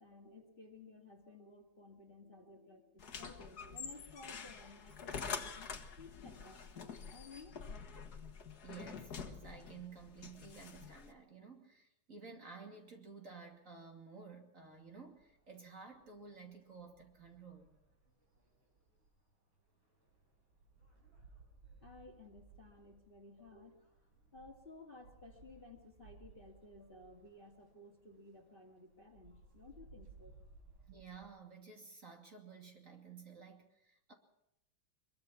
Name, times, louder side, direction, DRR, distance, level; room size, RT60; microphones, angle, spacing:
voice 1, 0.0-7.6 21.8-23.9 24.3-30.3, left 3 dB, 25° left, 3 dB, 2.4 m, -56 dB
sound 1, 3.0-11.1, left 6 dB, 50° left, 1.9 m, -47 dB
voice 2, 8.6-17.7 30.9-34.1, right 5 dB, 40° right, 2 dB, 3.0 m, -53 dB
sound 2, 14.6-31.3, right 3 dB, 80° right, 6.5 m, -63 dB
23.0 x 22.5 x 5.9 m, 0.82 s
omnidirectional pair, 2.2 m